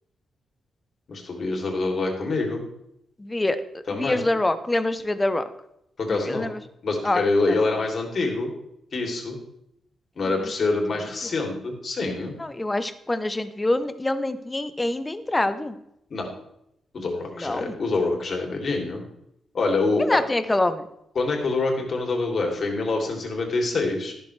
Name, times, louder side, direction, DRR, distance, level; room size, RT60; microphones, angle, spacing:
voice 1, 1.1-2.6 3.9-4.3 6.0-6.5 6.8-8.5 8.9-9.4 10.2-12.3 16.1-16.3 16.9-19.0 19.5-20.2 21.1-24.1, left 3 dB, 45° left, 1 dB, 3.1 m, -26 dB
voice 2, 3.2-3.6 3.9-5.4 6.1-6.6 7.0-7.2 12.4-15.8 17.4-17.7 20.1-20.8, left 2 dB, 15° left, 11 dB, 0.8 m, -25 dB
13.5 x 12.0 x 3.3 m, 0.78 s
wide cardioid pair, 140°, 0 cm